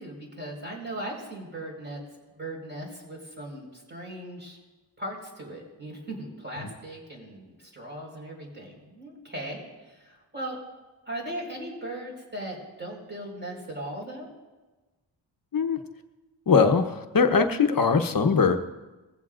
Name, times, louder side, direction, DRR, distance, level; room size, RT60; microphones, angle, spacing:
voice 1, 0.0-2.0 2.3-4.6 5.0-10.6 11.1-14.3, right 1 dB, 25° right, -2 dB, 4.9 m, -38 dB
voice 2, 16.5-18.6, left 5 dB, 45° left, 6 dB, 1.0 m, -21 dB
20.5 x 15.5 x 2.5 m, 1.2 s
wide cardioid pair, 95°, 46 cm